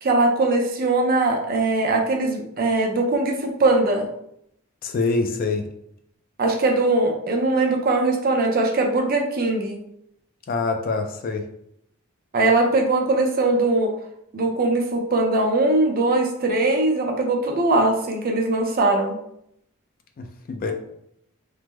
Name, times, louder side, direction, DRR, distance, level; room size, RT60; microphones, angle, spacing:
voice 1, 0.0-4.1 6.4-9.8 12.3-13.9 14.3-19.1, right 2 dB, 45° right, 2 dB, 0.5 m, -21 dB
voice 2, 4.8-5.6 10.5-11.4 20.2-20.7, left 3 dB, 40° left, 5 dB, 0.3 m, -25 dB
3.3 x 2.0 x 3.1 m, 0.74 s
head